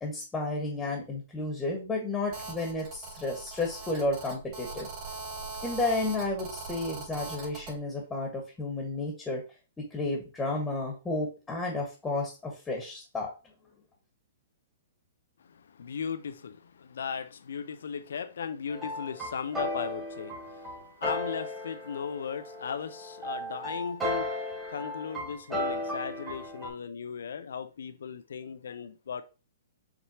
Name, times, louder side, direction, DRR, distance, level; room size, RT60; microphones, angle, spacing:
voice 1, 0.0-4.9 5.6-9.4 9.8-13.3, left 2 dB, 10° left, 1.4 m, -32 dB
Telephone, 2.3-7.7, right 3 dB, 35° right, 2.8 m, -41 dB
voice 2, 15.5-24.4 24.7-29.2, left 7 dB, 75° left, 0.5 m, -37 dB
sound 1, 18.7-26.7, left 1 dB, 15° right, 1.9 m, -35 dB
5.7 x 3.1 x 2.9 m
hypercardioid pair, 130°, 0 cm